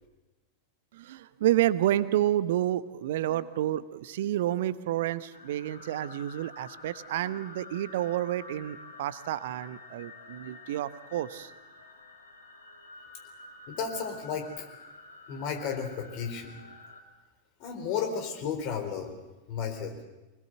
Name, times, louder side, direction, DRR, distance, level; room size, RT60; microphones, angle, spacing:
voice 1, 0.9-11.5, right 13 dB, 55° right, 15 dB, 1.0 m, -29 dB
sound 1, 5.3-17.0, left 3 dB, 75° left, 3.0 m, -49 dB
voice 2, 13.7-14.7 15.3-16.6 17.6-19.1 19.5-20.1, left 6 dB, 45° left, 5 dB, 4.4 m, -33 dB
25.0 x 20.5 x 8.0 m, 1.1 s
figure-of-eight pair, 90°, 0 cm